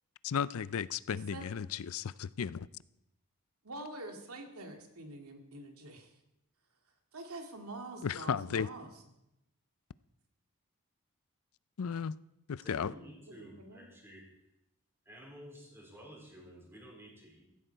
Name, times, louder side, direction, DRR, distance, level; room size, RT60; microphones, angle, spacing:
voice 1, 0.2-2.7 8.0-8.7 11.8-12.2 12.5-12.9, left 7 dB, 70° left, 0.4 m, -34 dB
voice 2, 1.1-1.5 3.6-6.2 7.1-8.9 12.9-13.9, right 2 dB, 80° right, 2.3 m, -46 dB
voice 3, 12.6-14.3 15.0-17.4, equal, 10° right, 4.3 m, -52 dB
16.0 x 15.0 x 4.6 m
head